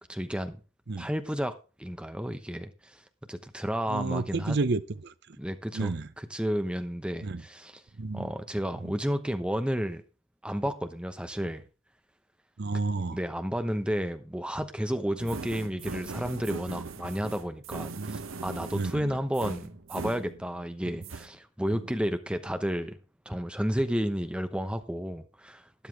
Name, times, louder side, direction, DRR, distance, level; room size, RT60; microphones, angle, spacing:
voice 1, 0.1-0.6 1.0-3.0 3.3-4.6 5.4-7.8 8.1-10.0 10.4-11.7 13.1-23.0 23.3-25.9, equal, 5° right, 0.9 m, -32 dB
voice 2, 3.9-5.4 5.7-6.1 7.2-7.4 8.0-8.3 8.8-8.9 12.6-13.2 17.9-18.2 18.7-19.2, right 3 dB, 55° right, 0.7 m, -31 dB
sound 1, 15.2-20.8 21.0-21.3, right 4 dB, 85° right, 0.8 m, -40 dB
12.5 x 10.0 x 3.4 m
head